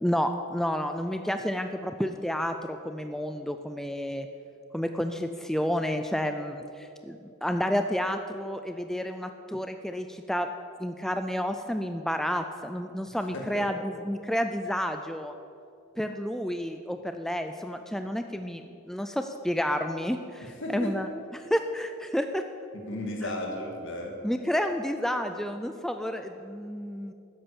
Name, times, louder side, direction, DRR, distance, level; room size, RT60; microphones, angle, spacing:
voice 1, 0.0-4.3 4.7-10.5 10.8-15.3 16.0-21.1 21.3-22.5 24.2-27.1, equal, ahead, 7 dB, 0.4 m, -30 dB
voice 2, 13.3-13.7 20.4-21.0 22.7-24.2, left 1 dB, 60° left, 2 dB, 2.2 m, -35 dB
13.5 x 10.0 x 7.0 m, 2.7 s
head